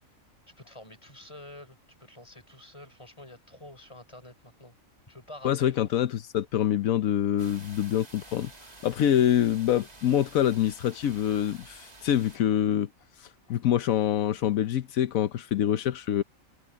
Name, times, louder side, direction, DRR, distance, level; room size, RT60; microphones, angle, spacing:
voice 1, 0.6-4.7 5.1-5.9, left 1 dB, 20° left, 5.9 m, -48 dB
voice 2, 5.4-8.5 8.8-12.9 13.5-16.2, left 10 dB, 85° left, 1.2 m, -25 dB
sound 1, 7.4-12.4, right 2 dB, 30° right, 2.0 m, -50 dB
omnidirectional pair, 1.4 m